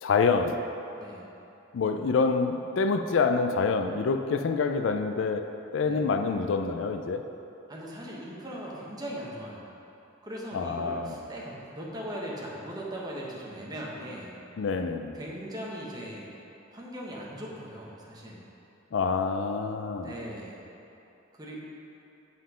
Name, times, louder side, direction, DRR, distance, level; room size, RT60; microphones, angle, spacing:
voice 1, 0.0-0.6 1.7-7.2 10.5-11.1 14.6-15.1 18.9-20.1, left 4 dB, 70° left, 7 dB, 0.4 m, -27 dB
voice 2, 5.8-6.1 7.7-9.7 10.2-14.3 15.1-16.3 16.7-18.4 20.0-20.6 21.3-21.6, equal, 20° right, -4 dB, 1.2 m, -39 dB
7.6 x 5.7 x 5.0 m, 2.9 s
head